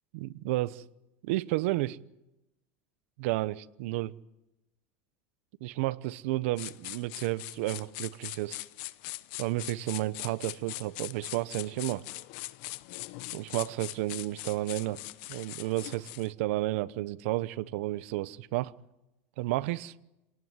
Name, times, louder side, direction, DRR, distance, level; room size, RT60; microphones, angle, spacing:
voice 1, 0.1-0.8 1.2-2.0 3.2-4.1 5.6-8.6 9.4-12.0 13.3-15.0 15.3-18.7 19.4-19.9, right 17 dB, 75° right, 1.0 m, -32 dB
sound 1, 6.6-16.3, left 20 dB, 60° left, 0.9 m, -42 dB
27.0 x 18.5 x 9.7 m
supercardioid pair, 145°, 7 cm